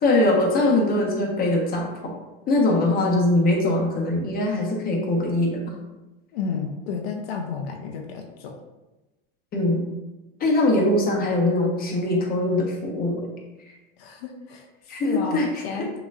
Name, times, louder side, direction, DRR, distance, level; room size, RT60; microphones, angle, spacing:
voice 1, 0.0-2.1 2.5-5.6 9.5-9.9 10.4-13.3 14.9-15.5, left 2 dB, 30° left, -1 dB, 1.1 m, -22 dB
voice 2, 6.3-8.5 14.0-16.0, left 5 dB, 80° left, 2 dB, 0.7 m, -32 dB
6.1 x 3.0 x 2.5 m, 1.1 s
supercardioid pair, 125°, 30 cm